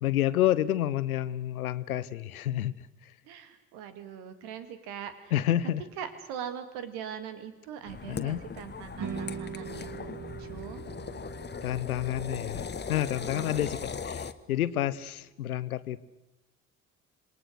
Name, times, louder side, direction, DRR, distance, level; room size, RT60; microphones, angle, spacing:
voice 1, 0.0-2.8 5.3-5.8 8.1-8.4 11.6-16.0, left 12 dB, 80° left, 18 dB, 0.7 m, -29 dB
voice 2, 3.2-5.3 6.0-10.8 13.2-13.7, right 8 dB, 65° right, 10 dB, 2.1 m, -41 dB
Gas Pump, 7.9-14.3, left 6 dB, 25° left, 1.1 m, -39 dB
sound 1, 9.0-15.2, right 7 dB, 45° right, 3.2 m, -43 dB
26.5 x 20.5 x 6.5 m, 1.0 s
figure-of-eight pair, 45°, 42 cm